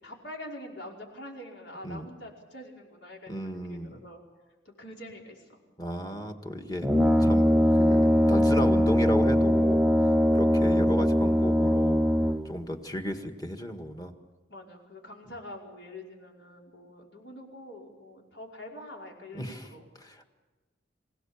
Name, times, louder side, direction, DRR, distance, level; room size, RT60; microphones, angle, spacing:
voice 1, 0.0-4.2 4.8-5.6 14.5-19.9, left 1 dB, 70° left, -1 dB, 5.2 m, -45 dB
voice 2, 3.3-4.0 5.8-6.9 7.2-8.0 8.3-9.9 10.3-12.1 12.4-14.1 19.3-19.7 20.0-20.2, equal, 20° left, 5 dB, 1.7 m, -34 dB
Brass instrument, 6.8-12.6, equal, ahead, 0.7 m, -22 dB
26.0 x 17.0 x 7.3 m, 1.3 s
head